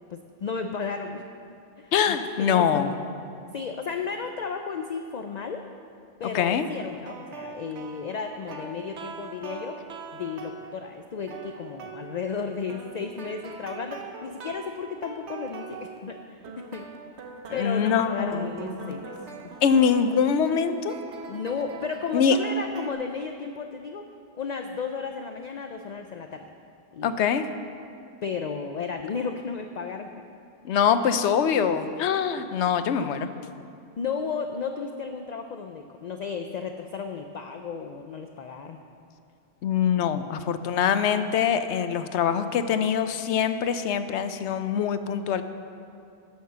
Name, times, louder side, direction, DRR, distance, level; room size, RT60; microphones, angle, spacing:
voice 1, 0.1-1.3 1.8-3.0 3.5-5.7 6.2-9.8 10.1-16.9 17.5-19.2 19.4-19.6 21.3-24.1 24.3-26.5 26.9-27.2 28.2-30.2 34.0-38.8, left 5 dB, 55° left, 6 dB, 0.5 m, -34 dB
voice 2, 1.9-2.9 6.3-6.7 17.5-18.5 18.8-19.0 19.6-20.9 22.1-22.4 27.0-27.5 30.6-33.3 39.6-45.4, left 7 dB, 90° left, 10 dB, 0.9 m, -24 dB
sound 1, 6.8-10.8 11.3-12.4 12.7-16.2 16.4-22.9, right 5 dB, 85° right, 1.1 m, -42 dB
11.0 x 6.5 x 6.8 m, 2.5 s
omnidirectional pair, 1.1 m